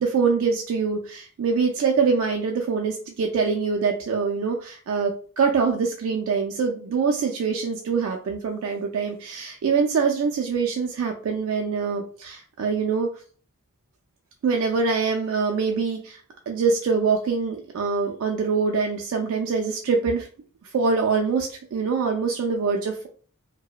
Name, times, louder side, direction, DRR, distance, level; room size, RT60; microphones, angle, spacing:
voice 1, 0.0-13.1 14.4-16.2 16.5-20.3 20.7-23.1, right 5 dB, 70° right, 2 dB, 0.3 m, -24 dB
2.8 x 2.0 x 2.3 m, 0.43 s
head